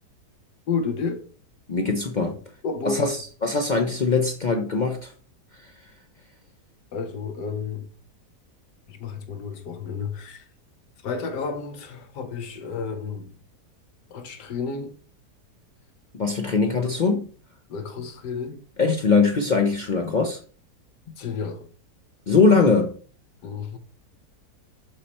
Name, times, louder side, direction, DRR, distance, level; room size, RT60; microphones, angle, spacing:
voice 1, 0.7-1.2 2.3-2.4 2.6-3.2 3.9-4.0 6.9-7.9 8.9-10.5 11.0-13.3 14.1-15.0 16.8-16.9 17.7-18.6 21.2-21.7 23.4-23.8, left 5 dB, 80° left, 1.5 m, -31 dB
voice 2, 1.7-2.3 2.8-3.2 3.4-5.1 5.6-5.7 16.1-17.2 18.8-20.4 22.3-22.9, left 4 dB, 65° left, 0.4 m, -21 dB
7.2 x 3.2 x 4.2 m
omnidirectional pair, 1.8 m